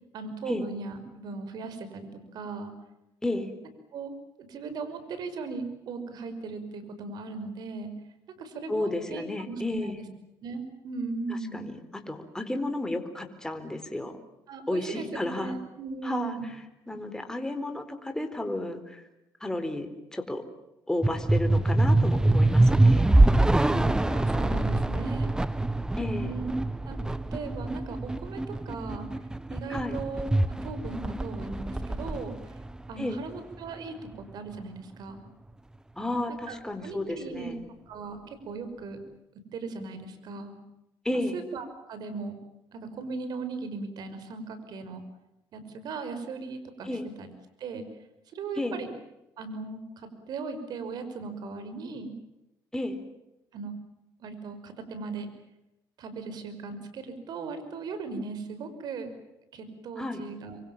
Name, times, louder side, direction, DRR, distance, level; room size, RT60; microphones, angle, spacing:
voice 1, 0.1-2.7 3.9-4.1 4.4-7.9 8.4-10.0 10.4-11.6 14.5-16.5 23.4-25.3 26.2-26.6 26.9-27.0 27.3-28.4 28.7-29.1 29.5-32.5 32.9-35.2 36.5-37.6 37.9-39.0 39.5-40.6 41.3-42.3 42.7-45.0 45.5-46.9 47.2-47.3 47.6-47.8 48.3-48.9 49.4-52.1 53.5-53.7 54.2-55.3 56.0-59.1 59.5-60.6, right 4 dB, 65° right, 9 dB, 5.7 m, -38 dB
voice 2, 8.7-10.0 11.3-11.8 12.1-14.2 14.7-15.5 16.0-16.4 16.9-19.0 19.4-19.9 20.1-20.4 20.9-23.1 26.0-26.3 29.7-30.0 33.0-33.2 36.0-37.6 41.0-41.4 46.8-47.1 48.6-48.8 52.7-53.0 60.0-60.2, left 1 dB, 10° left, 6 dB, 4.2 m, -32 dB
sound 1, 21.0-33.5, right 2 dB, 10° right, 1.1 m, -25 dB
26.5 x 25.0 x 7.3 m, 0.93 s
cardioid pair, 90°, 7 cm